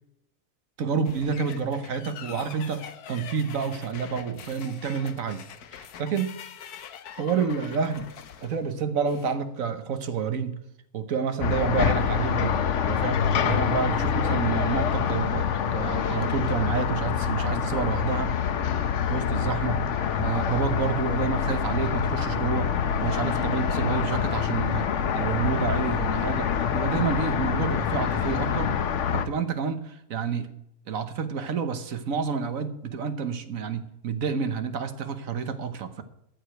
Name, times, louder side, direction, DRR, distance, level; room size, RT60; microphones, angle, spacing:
voice 1, 0.8-5.4 5.7-6.4 7.1-8.1 8.4-10.6 10.9-12.5 12.8-18.4 19.1-19.8 20.2-22.7 23.0-24.9 25.1-28.7 29.1-30.5 30.9-36.0, right 6 dB, 60° right, 10 dB, 1.4 m, -29 dB
sound 1, 1.0-9.4, left 8 dB, 75° left, 1.4 m, -44 dB
sound 2, 11.4-29.3, left 8 dB, 60° left, 1.0 m, -26 dB
14.0 x 4.9 x 8.8 m, 0.81 s
omnidirectional pair, 1.6 m